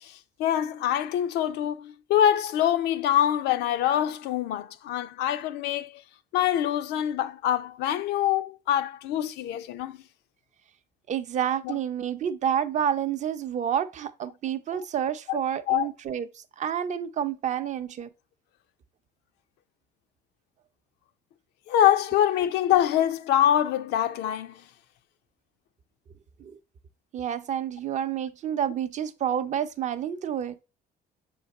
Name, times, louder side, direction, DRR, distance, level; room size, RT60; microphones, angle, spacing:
voice 1, 0.0-6.0 6.3-10.0 11.6-11.8 14.7-14.8 15.3-15.4 15.7-15.9 21.7-24.6, left 11 dB, 85° left, 0.5 m, -25 dB
voice 2, 11.1-18.1 26.4-26.6 27.1-30.6, right 9 dB, 45° right, 0.6 m, -29 dB
6.4 x 4.0 x 4.0 m
cardioid pair, 110°, 17 cm